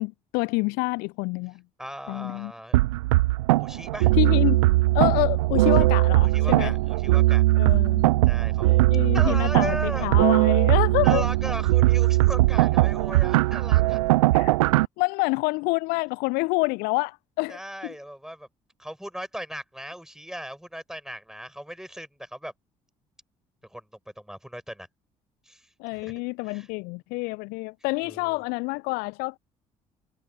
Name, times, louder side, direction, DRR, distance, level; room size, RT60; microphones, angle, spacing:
voice 1, 0.0-1.6 2.1-2.5 4.2-4.6 4.9-6.7 7.6-8.2 8.9-11.3 14.3-14.6 15.0-17.9 25.8-29.4, left 28 dB, 60° left, 0.5 m, -27 dB
voice 2, 1.8-2.8 3.6-4.1 5.6-5.7 6.2-7.4 8.2-8.8 9.1-10.1 11.0-14.0 17.5-18.5 18.8-22.5 23.6-24.9 25.4-26.7 28.0-28.4, equal, 5° right, 7.7 m, -37 dB
sound 1, 2.7-14.9, right 19 dB, 75° right, 0.8 m, -20 dB
figure-of-eight pair, 45°, 17 cm